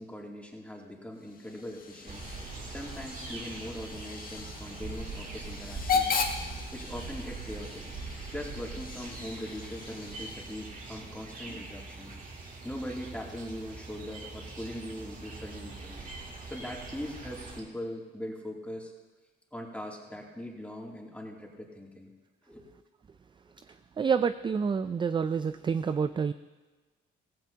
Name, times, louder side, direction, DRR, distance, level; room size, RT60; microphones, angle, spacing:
voice 1, 0.0-2.2 2.7-6.1 6.7-7.9 8.3-12.2 12.6-16.1 16.5-18.9 19.5-22.1 22.5-22.6, left 1 dB, 5° left, -2 dB, 2.7 m, -41 dB
Hiss / Train / Alarm, 1.2-10.8, left 5 dB, 45° left, 1.5 m, -37 dB
sound 1, 2.1-17.6, right 3 dB, 45° right, 2.6 m, -42 dB
voice 2, 24.0-26.3, right 6 dB, 25° right, 12 dB, 0.4 m, -28 dB
16.0 x 15.5 x 2.9 m, 1.3 s
cardioid pair, 90°, 20 cm